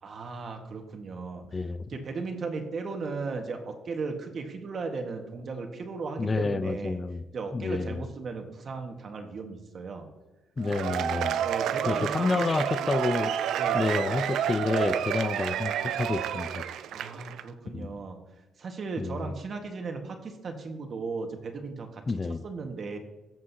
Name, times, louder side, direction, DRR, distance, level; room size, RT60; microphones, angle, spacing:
voice 1, 0.0-1.4 1.9-7.0 7.3-10.1 11.4-12.7 13.6-14.0 16.9-18.2 18.6-22.0 22.4-23.0, right 4 dB, 50° right, 4 dB, 1.6 m, -36 dB
voice 2, 1.5-1.8 6.2-7.2 7.5-8.0 10.6-11.4 11.8-13.3 13.7-16.6 17.7-17.9 19.0-19.3 22.1-22.4, left 3 dB, 30° left, 13 dB, 0.4 m, -29 dB
Cheering / Applause / Crowd, 10.6-17.4, right 9 dB, 80° right, 0.4 m, -30 dB
14.0 x 7.6 x 2.8 m, 1.0 s
cardioid pair, 90°, 0 cm